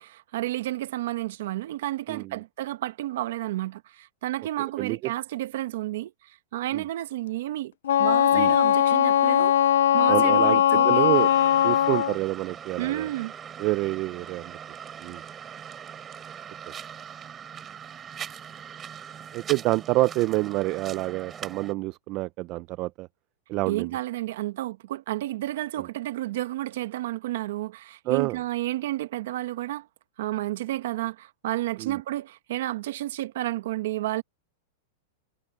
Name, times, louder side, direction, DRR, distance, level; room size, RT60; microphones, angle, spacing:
voice 1, 0.0-7.7 8.0-11.1 12.8-13.3 23.7-29.9 30.2-34.2, right 15 dB, 65° right, 1.3 m, -31 dB
voice 2, 4.8-5.1 6.7-6.8 8.3-8.5 10.1-11.3 11.6-13.1 13.6-14.6 15.0-15.2 19.3-23.1 23.5-23.9 28.1-28.4 31.8-32.0, right 19 dB, 35° right, 0.5 m, -27 dB
Wind instrument woodwind instrument, 7.8-12.2, left 11 dB, 85° left, 0.4 m, -20 dB
sound 1, 11.1-21.7, right 8 dB, 20° right, 7.8 m, -41 dB
supercardioid pair, 155°, 0 cm